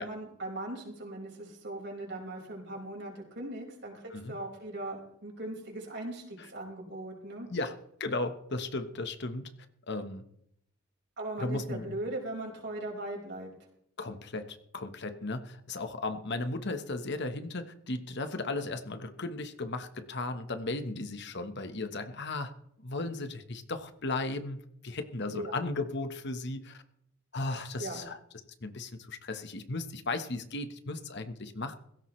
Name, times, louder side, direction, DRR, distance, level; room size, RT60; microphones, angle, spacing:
voice 1, 0.0-7.5 11.2-13.5 25.3-25.5 27.8-28.1, right 1 dB, 55° right, 0 dB, 5.3 m, -39 dB
voice 2, 7.5-9.5 9.9-10.3 11.4-12.0 14.0-22.5 22.8-26.8 27.3-28.2 28.6-31.7, left 2 dB, 55° left, 8 dB, 1.3 m, -36 dB
17.5 x 16.5 x 3.3 m, 0.71 s
head